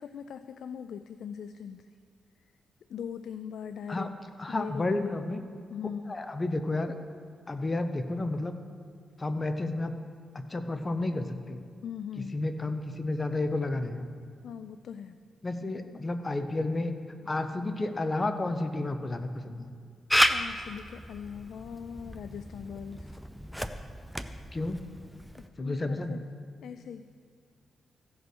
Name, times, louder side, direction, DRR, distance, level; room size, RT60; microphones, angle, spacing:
voice 1, 0.0-1.9 2.9-4.1 4.5-5.2 5.7-6.3 11.8-12.5 14.4-15.2 20.3-23.2 25.4-26.2 26.6-27.1, left 7 dB, 80° left, 11 dB, 0.3 m, -41 dB
voice 2, 4.4-5.4 6.1-6.9 7.5-8.5 9.2-9.9 10.3-11.6 12.3-14.1 15.4-17.0 17.3-19.7 24.5-24.8 25.6-26.2, left 2 dB, 30° left, 8 dB, 0.9 m, -31 dB
Camera, 20.1-25.5, equal, ahead, 0.6 m, -32 dB
15.5 x 5.6 x 6.1 m, 2.3 s
cardioid pair, 75°, 0 cm